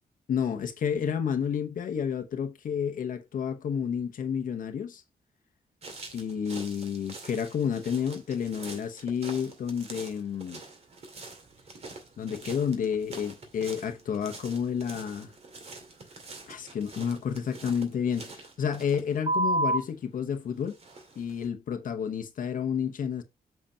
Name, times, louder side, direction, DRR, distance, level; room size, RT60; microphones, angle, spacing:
voice 1, 0.3-5.0 6.1-10.6 12.2-15.3 16.5-20.8 21.2-23.2, left 7 dB, 60° left, 1.1 m, -30 dB
sound 1, 5.8-20.1 20.7-21.5, right 2 dB, 40° right, 2.2 m, -38 dB
7.7 x 5.8 x 2.8 m
wide cardioid pair, 155°, 16 cm